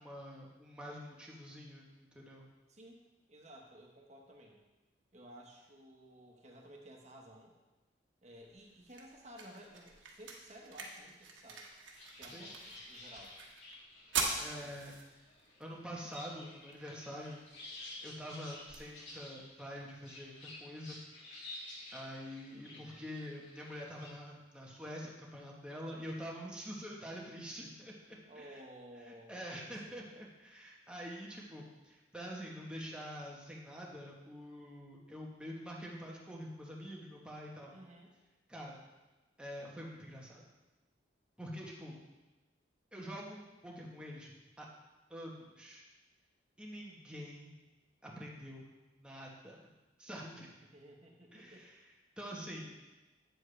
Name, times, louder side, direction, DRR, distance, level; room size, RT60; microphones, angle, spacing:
voice 1, 0.0-2.5 12.3-12.5 14.4-14.9 15.6-17.4 18.0-21.0 21.9-28.6 29.1-37.7 38.5-38.8 39.4-40.4 41.4-42.0 42.9-44.7 45.1-45.9 46.6-47.5 48.0-48.6 49.0-49.6 50.0-50.5 51.3-51.8 52.2-52.7, equal, 5° right, -3 dB, 1.2 m, -46 dB
voice 2, 2.7-3.0 3.3-4.6 5.1-7.5 8.2-11.7 12.2-13.3 14.3-14.8 22.5-23.0 28.3-30.0 37.7-38.1 50.7-51.7, right 1 dB, 35° right, 0 dB, 1.3 m, -55 dB
sound 1, 8.4-20.4, right 4 dB, 80° right, 1.2 m, -45 dB
sound 2, 12.0-24.1, left 2 dB, 75° left, 2.4 m, -52 dB
9.1 x 7.4 x 3.3 m, 1.1 s
head